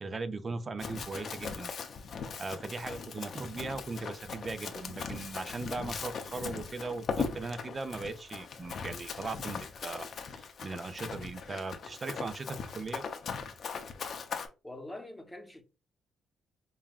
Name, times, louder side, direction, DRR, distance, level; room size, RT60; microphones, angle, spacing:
voice 1, 0.0-1.8 2.4-13.0, right 3 dB, 30° right, 0.5 m, -39 dB
Run, 0.8-14.5, left 5 dB, 55° left, 0.6 m, -39 dB
voice 2, 14.6-15.6, left 1 dB, 5° left, 1.0 m, -44 dB
5.4 x 2.3 x 2.4 m
cardioid pair, 90°, 0 cm